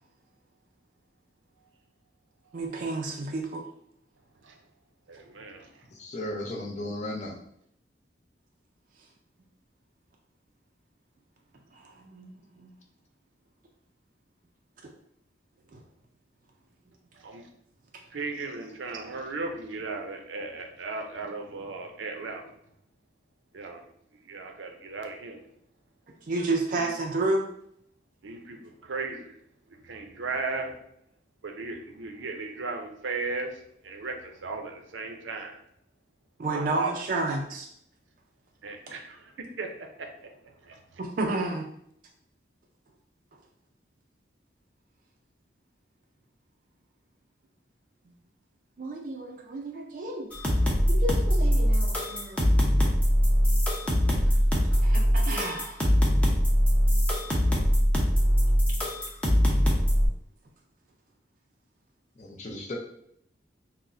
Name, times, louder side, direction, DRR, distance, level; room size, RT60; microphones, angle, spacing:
voice 1, 2.5-3.6 11.7-12.7 14.8-14.9 15.7-15.8 26.3-27.5 36.4-37.7 38.9-39.0 41.0-41.7 48.8-50.3 50.9-52.5 54.2-54.3 54.7-55.8, right 2 dB, 45° right, 2 dB, 0.4 m, -31 dB
voice 2, 5.1-5.9 17.1-17.5 18.1-22.5 23.5-23.9 24.2-25.4 26.7-26.9 28.2-29.4 29.7-30.8 31.4-35.6 36.5-37.0 38.6-41.0, right 3 dB, 90° right, 4 dB, 0.6 m, -36 dB
voice 3, 5.9-7.4 62.2-62.8, left 1 dB, 40° left, -1 dB, 0.6 m, -35 dB
sound 1, 50.3-60.1, equal, 5° left, 0.6 m, -22 dB
5.9 x 2.1 x 2.6 m, 0.70 s
head